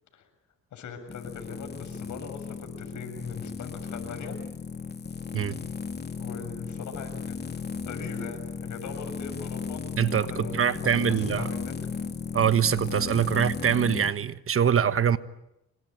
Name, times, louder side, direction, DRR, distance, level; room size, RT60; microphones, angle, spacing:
voice 1, 0.7-4.4 6.2-7.4 7.8-9.8 10.1-11.7, left 5 dB, 75° left, 7.2 m, -40 dB
sound 1, 1.1-14.1, left 5 dB, 35° left, 2.8 m, -35 dB
voice 2, 10.0-11.5 12.3-15.2, right 8 dB, 45° right, 1.3 m, -24 dB
27.0 x 23.5 x 9.4 m
cardioid pair, 90°, 30 cm